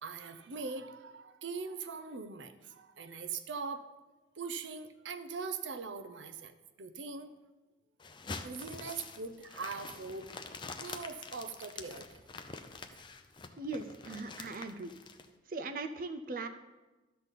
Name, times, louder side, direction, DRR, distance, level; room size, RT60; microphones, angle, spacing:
voice 1, 0.0-3.9 4.4-7.3 8.4-10.3 10.8-12.2, right 4 dB, 85° right, 10 dB, 0.6 m, -41 dB
sound 1, 8.0-15.3, left 4 dB, 25° left, 0.6 m, -46 dB
voice 2, 13.6-14.9 15.5-16.5, right 3 dB, 50° right, 6 dB, 0.6 m, -39 dB
12.0 x 4.1 x 7.2 m, 1.1 s
head